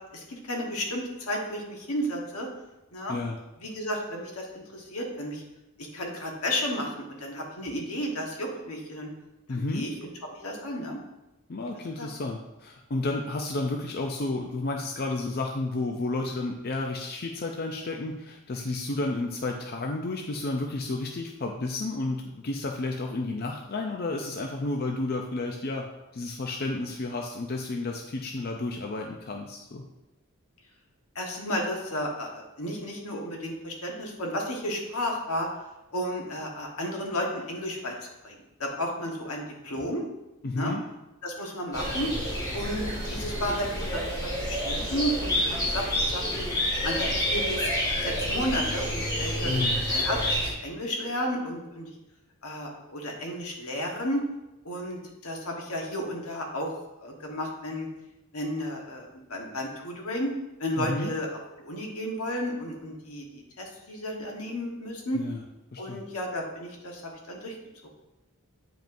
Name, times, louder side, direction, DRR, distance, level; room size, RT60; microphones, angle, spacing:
voice 1, 0.1-2.5 2.9-3.2 3.6-5.4 5.8-9.1 9.5-11.0 12.0-12.1 31.1-35.5 35.9-37.9 38.2-40.0 40.5-40.7 41.2-42.1 42.5-46.5 46.8-47.7 48.0-49.5 49.9-51.9 52.4-54.2 54.6-56.7 57.0-57.9 58.3-60.3 60.6-61.3 61.6-65.2 65.8-67.5 67.8-67.9, equal, 80° left, 0 dB, 1.4 m, -33 dB
voice 2, 9.5-9.9 11.5-25.8 26.1-29.8 40.4-40.8 49.4-49.7 60.8-61.1 65.1-65.4 65.7-66.0, left 2 dB, 45° left, 2 dB, 0.5 m, -31 dB
sound 1, 41.7-50.5, equal, 15° left, 1.7 m, -28 dB
9.0 x 5.1 x 2.6 m, 0.98 s
head